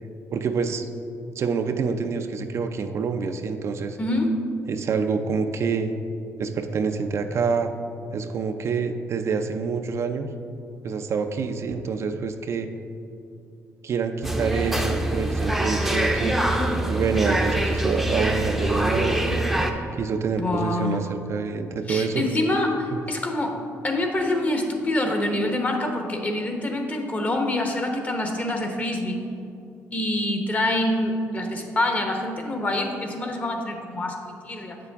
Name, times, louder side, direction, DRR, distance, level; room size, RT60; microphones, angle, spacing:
voice 1, 0.3-0.9 1.4-4.0 4.7-5.9 6.4-7.7 8.1-10.3 10.8-12.7 13.8-16.4 16.9-19.5 20.0-22.2 22.9-23.0, right 5 dB, 50° right, 7 dB, 0.4 m, -27 dB
voice 2, 4.0-4.4 20.4-21.0 21.9-23.6 23.8-29.2 29.9-34.8, left 1 dB, 25° left, 3 dB, 1.0 m, -26 dB
sound 1, 14.2-19.7, right 1 dB, ahead, 0.6 m, -24 dB
7.9 x 6.8 x 3.5 m, 2.6 s
cardioid pair, 110°, 6 cm